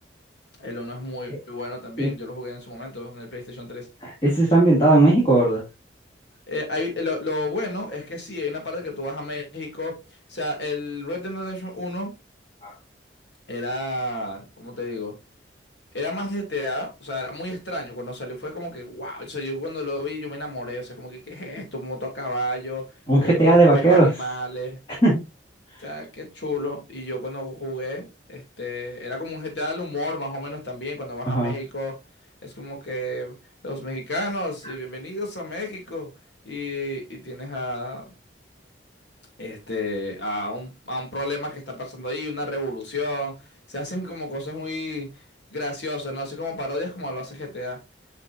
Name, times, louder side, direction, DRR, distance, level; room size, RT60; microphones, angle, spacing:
voice 1, 0.6-3.9 6.5-10.0 10.3-12.1 13.5-15.1 15.9-22.8 23.2-24.8 25.8-32.0 32.4-33.3 33.6-36.1 36.4-38.1 39.4-43.3 43.7-45.1 45.5-47.8, left 1 dB, 65° left, 2.5 m, -31 dB
voice 2, 4.0-5.6 12.6-12.7 23.1-24.1 25.0-25.2 31.3-31.5, right 2 dB, 30° left, 2.4 m, -17 dB
8.0 x 5.9 x 2.6 m
head